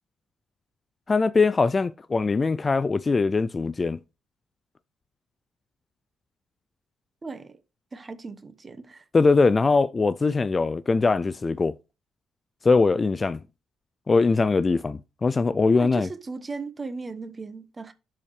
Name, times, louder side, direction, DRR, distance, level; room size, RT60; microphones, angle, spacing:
voice 1, 1.1-4.0 9.1-11.7 12.6-13.4 14.1-16.1, left 4 dB, 30° left, 0.3 m, -21 dB
voice 2, 7.2-7.6 7.9-9.0 15.7-17.9, right 4 dB, 30° right, 1.1 m, -37 dB
12.0 x 4.4 x 3.2 m
cardioid pair, 90°, 0 cm